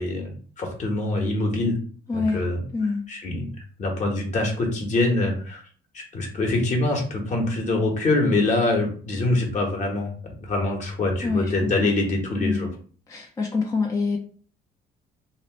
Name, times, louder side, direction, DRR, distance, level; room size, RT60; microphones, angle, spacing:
voice 1, 0.0-1.8 2.1-2.6 3.1-3.5 3.8-5.6 5.9-10.1 10.4-12.7, left 2 dB, 45° left, 1 dB, 1.1 m, -24 dB
voice 2, 2.1-2.4 2.7-3.0 11.2-11.9 12.4-12.7 13.1-14.2, left 4 dB, 20° left, 1 dB, 0.4 m, -26 dB
2.9 x 2.4 x 2.9 m, 0.43 s
cardioid pair, 110°, 17 cm